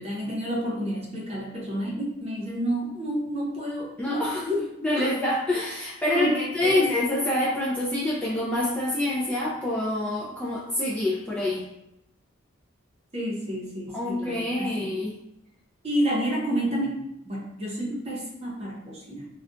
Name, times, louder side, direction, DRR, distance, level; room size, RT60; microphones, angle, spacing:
voice 1, 0.0-4.2 4.5-4.6 5.0-5.1 6.0-6.9 13.1-14.9 15.8-19.3, equal, 30° right, -4 dB, 0.7 m, -30 dB
voice 2, 4.0-11.6 13.9-15.1 17.9-18.0, left 1 dB, 5° left, -6 dB, 0.4 m, -26 dB
2.4 x 2.2 x 3.7 m, 0.83 s
head